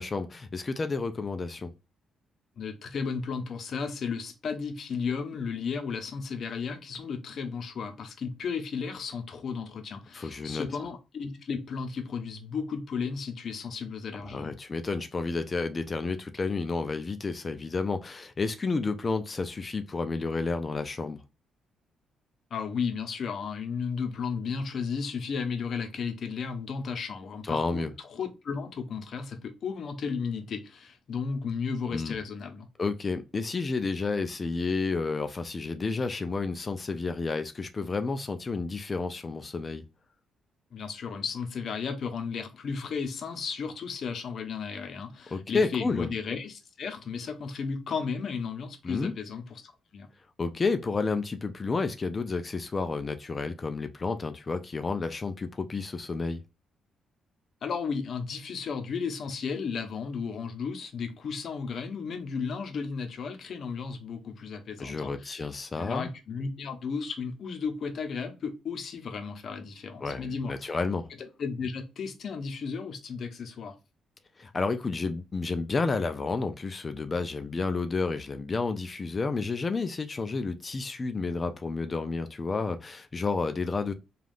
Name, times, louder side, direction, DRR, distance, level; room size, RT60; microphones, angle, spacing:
voice 1, 0.0-1.7 10.1-10.7 14.2-21.2 27.4-27.9 31.9-32.1 32.8-39.8 45.3-46.1 48.8-49.1 50.4-56.4 64.8-66.1 70.0-71.1 74.4-83.9, left 4 dB, 30° left, 0.3 m, -31 dB
voice 2, 2.6-14.5 22.5-32.7 40.7-50.1 57.6-65.5 65.8-70.7 71.4-73.8, left 5 dB, 55° left, 0.7 m, -34 dB
3.3 x 2.3 x 2.5 m
cardioid pair, 90°, 0 cm